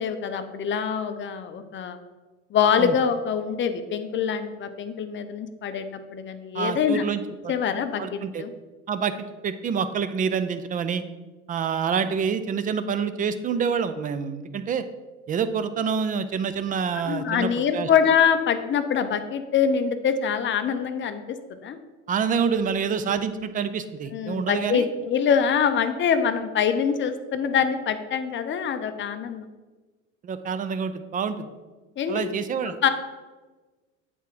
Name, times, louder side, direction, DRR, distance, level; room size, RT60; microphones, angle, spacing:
voice 1, 0.0-2.0 2.5-5.9 6.1-7.0 7.5-8.5 17.1-21.2 21.6-21.8 24.1-29.5 32.0-32.3 32.8-32.9, left 7 dB, 30° left, 9 dB, 0.6 m, -24 dB
voice 2, 6.5-7.5 8.0-8.5 8.9-11.0 11.5-14.8 15.3-17.9 22.1-24.9 30.2-31.5 32.1-32.8, right 6 dB, 20° right, 11 dB, 0.4 m, -27 dB
8.2 x 3.6 x 4.7 m, 1.3 s
hypercardioid pair, 70°, 39 cm